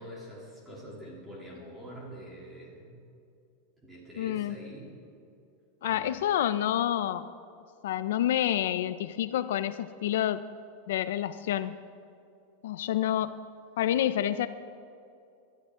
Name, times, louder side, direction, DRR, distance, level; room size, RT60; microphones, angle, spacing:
voice 1, 0.0-3.0 3.8-4.9 5.8-6.1, equal, 10° right, -5 dB, 3.0 m, -45 dB
voice 2, 4.2-4.6 5.8-7.3 7.8-10.4 10.9-11.8 12.6-13.4 13.8-14.5, left 11 dB, 75° left, 13 dB, 0.5 m, -28 dB
18.5 x 12.0 x 3.7 m, 2.5 s
supercardioid pair, 175°, 0 cm